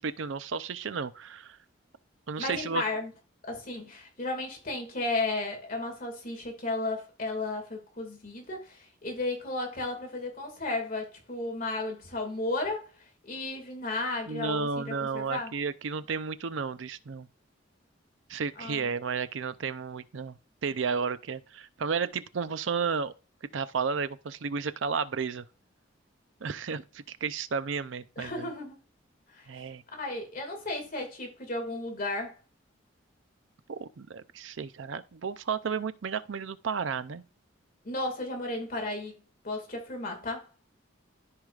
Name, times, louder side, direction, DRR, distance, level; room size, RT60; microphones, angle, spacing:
voice 1, 0.0-1.6 2.3-2.8 14.3-17.3 18.3-23.1 23.5-25.5 26.4-28.5 29.5-29.8 33.7-37.2, right 5 dB, 75° right, 0.5 m, -33 dB
voice 2, 2.4-3.1 3.4-12.9 13.2-15.5 18.6-18.8 28.2-28.8 29.3-29.4 29.9-32.4 37.8-39.1 39.4-40.5, left 2 dB, 45° left, 2.2 m, -34 dB
14.0 x 4.8 x 2.4 m
head